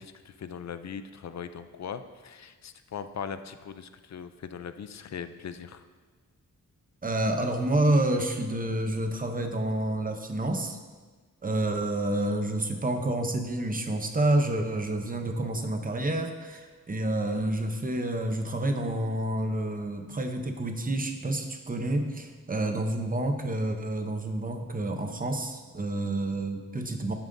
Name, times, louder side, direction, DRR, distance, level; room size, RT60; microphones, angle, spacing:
voice 1, 0.0-5.8 25.9-26.2, left 7 dB, 55° left, 10 dB, 0.5 m, -40 dB
voice 2, 7.0-10.8 11.4-27.1, right 1 dB, 25° right, 5 dB, 0.7 m, -29 dB
11.0 x 8.9 x 2.6 m, 1.4 s
wide cardioid pair, 180°, 33 cm